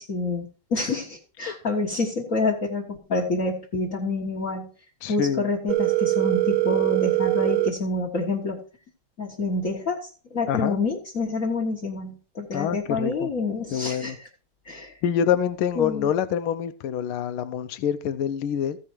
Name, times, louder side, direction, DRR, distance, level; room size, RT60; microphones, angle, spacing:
voice 1, 0.0-4.7 5.1-8.6 9.2-14.1 14.7-14.9 15.8-16.1, left 3 dB, 40° left, 1.7 m, -28 dB
voice 2, 5.0-5.5 10.5-10.8 12.5-13.3 13.7-14.2 15.0-18.8, left 9 dB, 80° left, 1.6 m, -26 dB
Telephone, 5.7-7.7, right 21 dB, 70° right, 1.7 m, -22 dB
14.5 x 5.5 x 4.5 m
omnidirectional pair, 2.3 m